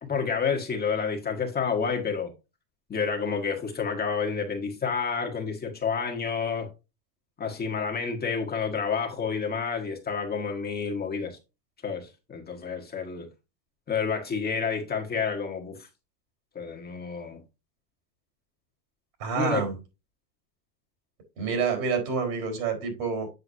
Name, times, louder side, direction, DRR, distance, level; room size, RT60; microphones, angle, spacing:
voice 1, 0.0-2.3 2.9-6.7 7.4-11.4 11.8-13.3 13.9-15.8 16.5-17.4 19.3-19.6, left 6 dB, 20° left, 1.3 m, -29 dB
voice 2, 19.2-19.8 21.4-23.3, right 5 dB, 70° right, 4.2 m, -28 dB
7.9 x 6.9 x 2.7 m
supercardioid pair, 140°, 49 cm